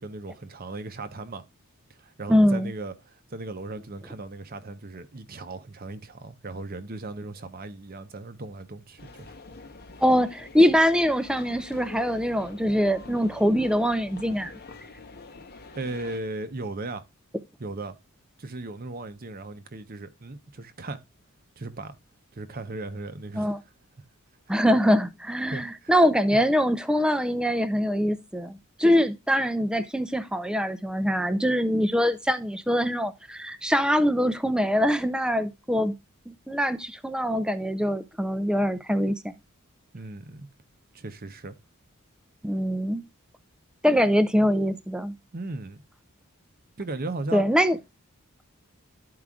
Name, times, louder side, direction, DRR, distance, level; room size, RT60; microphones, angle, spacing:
voice 1, 0.0-1.4 1.9-9.3 15.7-17.0 17.6-18.0 18.4-21.0 21.6-22.0 22.3-23.6 25.5-25.9 26.3-26.4 39.9-40.5 40.9-41.6 45.3-45.8 46.8-47.4, right 2 dB, 40° right, 0.7 m, -37 dB
voice 2, 2.3-2.7 10.0-14.5 23.4-23.6 24.5-35.9 36.3-39.3 42.4-43.0 43.8-45.1 47.3-47.8, equal, 5° right, 0.5 m, -23 dB
sound 1, 9.0-16.2, left 3 dB, 45° left, 0.9 m, -45 dB
12.5 x 4.8 x 2.4 m
head